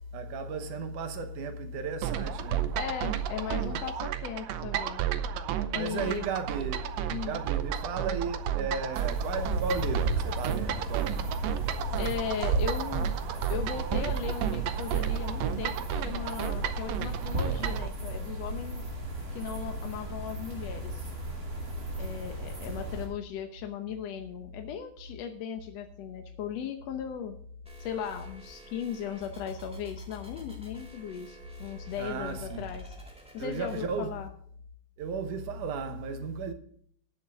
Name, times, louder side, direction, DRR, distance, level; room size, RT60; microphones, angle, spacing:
voice 1, 0.1-2.7 5.7-11.4 32.0-32.7 33.4-34.2 35.0-36.5, right 4 dB, 70° right, 2.4 m, -35 dB
sound 1, 2.0-17.9, right 11 dB, 85° right, 1.5 m, -32 dB
voice 2, 2.7-5.0 5.7-6.3 7.1-7.4 11.7-13.1 13.5-18.8 19.3-21.1 22.0-27.4 27.8-33.0 33.3-34.3, left 8 dB, 70° left, 1.6 m, -37 dB
sound 2, 8.9-23.1, right 1 dB, 30° right, 2.7 m, -35 dB
sound 3, 27.6-33.8, equal, 5° right, 1.3 m, -48 dB
19.0 x 7.4 x 3.5 m
omnidirectional pair, 4.1 m